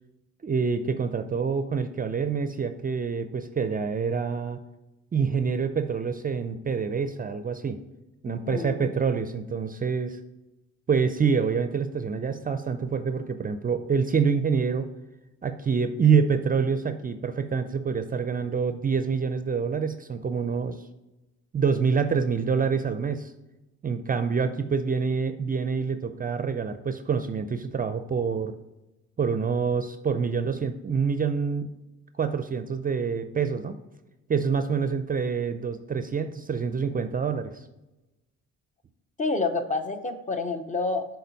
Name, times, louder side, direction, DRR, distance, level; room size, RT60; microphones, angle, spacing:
voice 1, 0.4-4.6 5.1-7.8 8.2-10.2 10.9-14.9 15.4-20.8 21.5-23.3 23.8-28.6 29.2-31.7 32.2-33.8 34.3-37.5, right 6 dB, 30° right, 9 dB, 0.4 m, -26 dB
voice 2, 8.3-8.9 39.2-41.0, left 3 dB, 25° left, 8 dB, 0.7 m, -28 dB
6.7 x 3.9 x 4.0 m, 1.0 s
cardioid pair, 90°, 30 cm